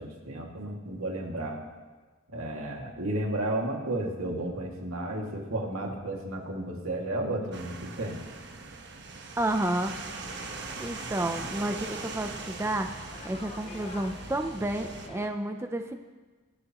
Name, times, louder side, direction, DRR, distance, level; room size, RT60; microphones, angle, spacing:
voice 1, 0.0-1.6 2.3-8.2, right 1 dB, 80° right, 0 dB, 2.2 m, -33 dB
sound 1, 7.5-15.1, right 4 dB, 55° right, 1.2 m, -41 dB
voice 2, 9.4-9.9 10.8-12.9 13.2-16.0, right 1 dB, 10° right, 5 dB, 0.5 m, -30 dB
sound 2, 9.8-15.3, left 3 dB, 30° left, 0.8 m, -46 dB
22.0 x 12.0 x 3.0 m, 1.3 s
head